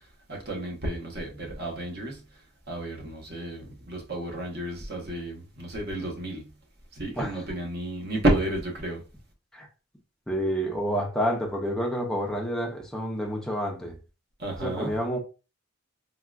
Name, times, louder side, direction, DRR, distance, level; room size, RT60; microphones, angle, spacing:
voice 1, 0.3-2.2 2.7-6.5 6.9-9.0 14.4-15.0, right 1 dB, 50° right, 0.9 m, -31 dB
voice 2, 10.3-14.0 14.6-15.2, equal, 5° left, 0.4 m, -29 dB
3.6 x 2.2 x 2.3 m
head